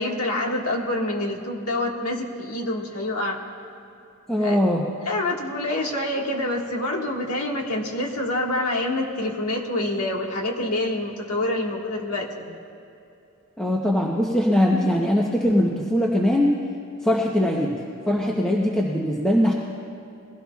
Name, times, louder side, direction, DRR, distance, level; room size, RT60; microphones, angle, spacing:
voice 1, 0.0-3.4 4.4-4.6 5.1-12.6, left 1 dB, 85° left, 0 dB, 1.7 m, -26 dB
voice 2, 4.3-4.8 13.6-16.5 17.0-19.5, left 1 dB, 5° left, -3 dB, 0.8 m, -21 dB
22.0 x 16.5 x 2.4 m, 2.7 s
head